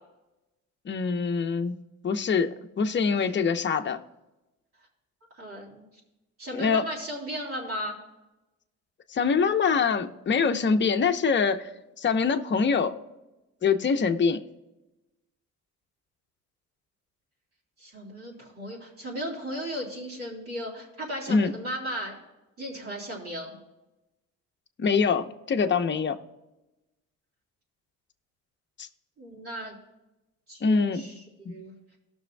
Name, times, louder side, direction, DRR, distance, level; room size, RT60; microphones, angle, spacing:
voice 1, 0.8-4.0 6.5-6.8 9.1-11.7 12.0-13.0 13.6-14.4 21.3-21.5 24.8-26.2 28.8-28.9 30.6-31.0 31.4-31.6, left 5 dB, 40° left, 6 dB, 0.9 m, -24 dB
voice 2, 5.4-5.8 6.4-8.0 17.8-22.2 22.6-23.6 29.2-29.8 30.5-31.7, equal, 50° right, -4 dB, 3.4 m, -36 dB
18.0 x 6.3 x 2.3 m, 1.0 s
cardioid pair, 90°, 30 cm